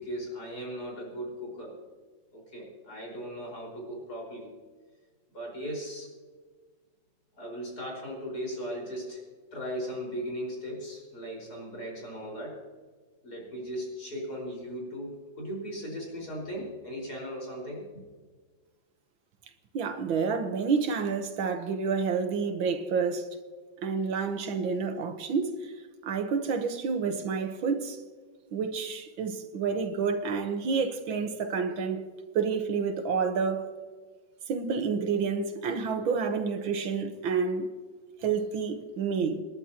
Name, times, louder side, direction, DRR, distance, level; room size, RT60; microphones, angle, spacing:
voice 1, 0.0-1.8 2.3-4.5 5.3-6.1 7.4-9.2 9.5-12.6 13.2-18.0, equal, 50° left, 5.5 m, -37 dB
voice 2, 19.7-23.3 23.8-25.7 26.0-28.0 28.5-32.0 32.4-33.7 34.5-37.7 38.2-39.4, right 5 dB, 80° right, 1.9 m, -29 dB
27.0 x 11.0 x 2.9 m
omnidirectional pair, 2.1 m